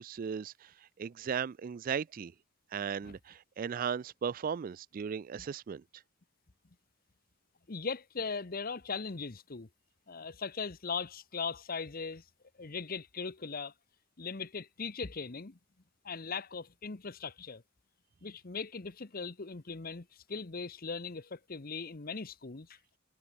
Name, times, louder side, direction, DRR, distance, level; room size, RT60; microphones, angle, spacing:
voice 1, 0.0-2.3 2.7-5.8, right 7 dB, 45° right, 0.3 m, -36 dB
voice 2, 7.7-9.7 10.1-12.2 12.6-13.7 14.2-15.6 16.0-17.6 18.2-22.8, left 5 dB, 45° left, 1.0 m, -39 dB
head